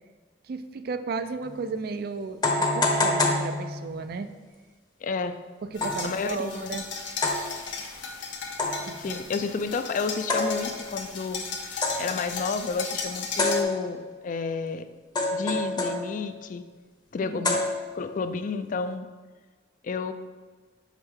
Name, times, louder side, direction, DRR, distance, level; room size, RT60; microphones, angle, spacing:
voice 1, 0.4-4.3 5.7-6.9 8.8-9.2 17.3-17.5, right 4 dB, 55° right, 10 dB, 0.4 m, -34 dB
sound 1, 1.4-1.5 2.4-4.1 5.8-6.1 7.2-7.5 8.6-9.0 10.3-10.9 11.8-12.2 13.4-14.1 15.2-16.3 17.4-18.1, left 2 dB, 25° left, 0.7 m, -27 dB
voice 2, 5.0-5.4 6.0-6.7 9.0-14.9 15.3-16.7 17.1-17.6 17.9-19.1 19.8-20.1, left 4 dB, 45° left, 10 dB, 0.3 m, -31 dB
sound 2, 5.7-13.6, left 5 dB, 85° left, 0.8 m, -36 dB
5.3 x 4.9 x 3.6 m, 1.4 s
head